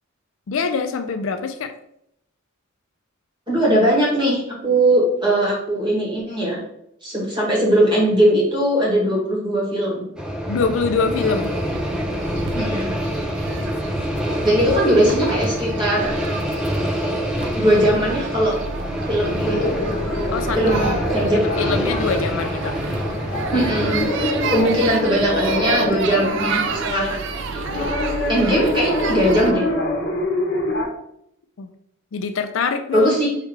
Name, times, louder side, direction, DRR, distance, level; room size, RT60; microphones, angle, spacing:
voice 1, 0.5-1.7 10.5-11.5 12.5-12.8 20.3-20.6 21.6-22.8 31.6-31.7 32.1-33.4, left 5 dB, 65° left, 7 dB, 0.4 m, -24 dB
voice 2, 3.5-6.6 7.0-10.1 12.5-12.9 14.4-16.2 17.6-18.6 19.1-19.7 20.6-21.4 23.5-24.1 24.5-27.2 27.5-27.9 28.3-29.6 32.9-33.3, right 1 dB, 25° right, -5 dB, 1.8 m, -20 dB
sound 1, 10.2-24.9, equal, 5° right, 0.5 m, -26 dB
sound 2, 11.1-29.5, right 5 dB, 60° right, 0.4 m, -31 dB
sound 3, 19.5-30.9, left 2 dB, 50° left, 1.0 m, -26 dB
4.8 x 3.3 x 3.2 m, 0.76 s
head